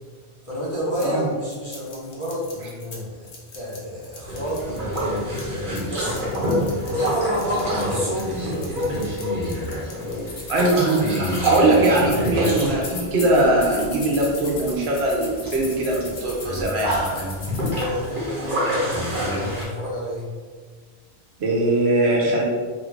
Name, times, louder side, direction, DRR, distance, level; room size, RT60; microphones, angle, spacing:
voice 1, 0.4-3.3 3.5-6.2 6.9-9.1 17.7-20.3, equal, 40° left, -8 dB, 0.6 m, -30 dB
sound 1, 0.9-1.1 1.5-3.0 3.2-5.8 6.1-17.8, left 4 dB, 85° left, 1.0 m, -38 dB
Boat Water vehicle, 4.3-19.6, equal, 55° right, 1.0 m, -27 dB
voice 2, 10.5-17.0 21.4-22.4, right 2 dB, 75° right, -2 dB, 1.0 m, -21 dB
sound 2, 12.0-14.0 14.3-14.7 15.1-15.2 15.4-15.6 16.0-16.1 16.6-17.4, right 1 dB, 10° right, 0.9 m, -32 dB
2.8 x 2.5 x 3.1 m, 1.5 s
omnidirectional pair, 1.1 m